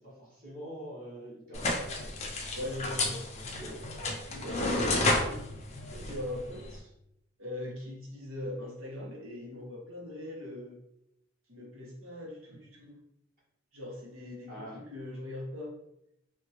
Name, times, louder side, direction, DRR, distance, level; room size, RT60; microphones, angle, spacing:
voice 1, 0.0-2.2 2.6-2.7 3.5-3.8 4.9-5.0 14.5-14.8, equal, 45° right, -8 dB, 1.4 m, -45 dB
sound 1, 1.5-6.8, left 2 dB, 30° left, 0.5 m, -32 dB
Telephone, 2.0-2.2 3.4-4.1 5.3-6.1, left 1 dB, 85° left, 0.4 m, -49 dB
voice 2, 2.5-3.3 4.3-5.4 5.9-6.9 7.4-10.8 11.5-13.0 13.7-15.8, left 1 dB, 85° right, -2 dB, 0.9 m, -41 dB
3.4 x 2.2 x 2.8 m, 0.81 s
head